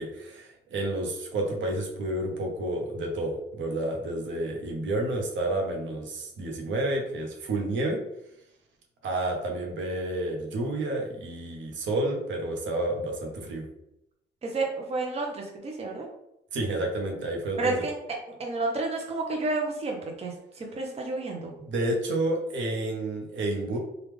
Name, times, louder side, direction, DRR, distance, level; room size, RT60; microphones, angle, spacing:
voice 1, 0.0-8.0 9.0-13.7 16.5-17.8 21.6-23.8, right 1 dB, 70° right, 1 dB, 0.9 m, -30 dB
voice 2, 14.4-16.1 17.6-18.0 18.4-21.5, right 3 dB, 30° right, 1 dB, 0.6 m, -30 dB
3.2 x 2.4 x 3.4 m, 0.83 s
cardioid pair, 90°, 20 cm